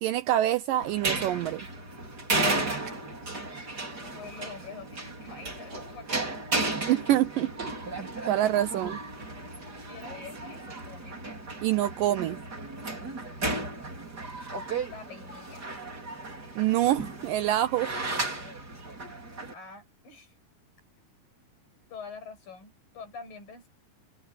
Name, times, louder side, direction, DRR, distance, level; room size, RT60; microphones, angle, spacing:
voice 1, 0.0-1.7 6.9-7.7 8.3-9.0 11.6-12.4 16.6-17.9, right 13 dB, 75° right, 2.1 m, -26 dB
sound 1, 0.8-19.5, right 2 dB, 25° right, 5.4 m, -34 dB
voice 2, 4.0-6.4 9.9-11.2 14.9-15.7 19.5-20.4 21.0-21.1 21.9-23.7, left 5 dB, 60° left, 9.8 m, -45 dB
omnidirectional pair, 4.4 m